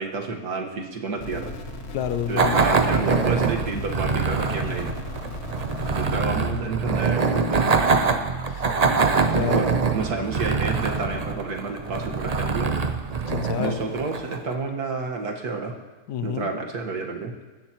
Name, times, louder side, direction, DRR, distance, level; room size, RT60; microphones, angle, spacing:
voice 1, 0.0-1.5 2.3-4.9 5.9-8.2 9.4-12.7 13.6-15.8 16.2-17.3, right 4 dB, 80° right, 2 dB, 2.0 m, -30 dB
sound 1, 1.2-6.5, left 2 dB, 45° left, 1.5 m, -36 dB
voice 2, 1.9-2.7 8.5-8.7 9.3-9.8 13.3-13.8 16.1-16.5, left 10 dB, 85° left, 11 dB, 1.3 m, -29 dB
sound 2, 2.4-14.5, right 4 dB, 40° right, 0.6 m, -24 dB
21.5 x 14.5 x 3.0 m, 1.3 s
omnidirectional pair, 1.6 m